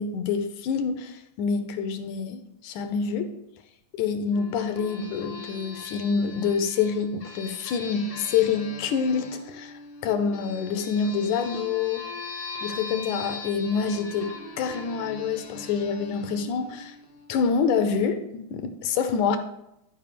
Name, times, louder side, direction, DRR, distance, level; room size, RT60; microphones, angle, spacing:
voice 1, 0.0-3.4 3.9-9.7 10.0-12.0 12.6-17.0 17.3-19.4, left 6 dB, 75° left, 2.0 m, -27 dB
sound 1, 4.3-17.5, left 4 dB, 55° left, 1.1 m, -41 dB
12.0 x 5.2 x 5.1 m
omnidirectional pair, 3.9 m